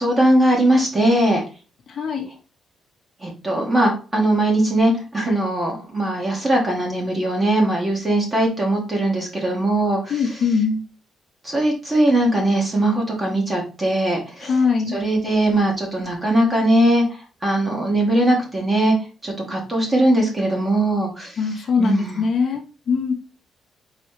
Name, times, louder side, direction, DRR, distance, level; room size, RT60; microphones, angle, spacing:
voice 1, 0.0-1.4 3.2-10.2 11.4-14.5 14.9-17.0 17.4-18.9 19.2-21.4 21.8-22.2, right 1 dB, 20° right, -1 dB, 1.3 m, -20 dB
voice 2, 1.9-2.3 10.1-10.8 14.4-15.0 21.4-23.1, left 5 dB, 50° left, 2 dB, 0.9 m, -22 dB
4.1 x 3.8 x 3.1 m, 0.35 s
cardioid pair, 150°, 0 cm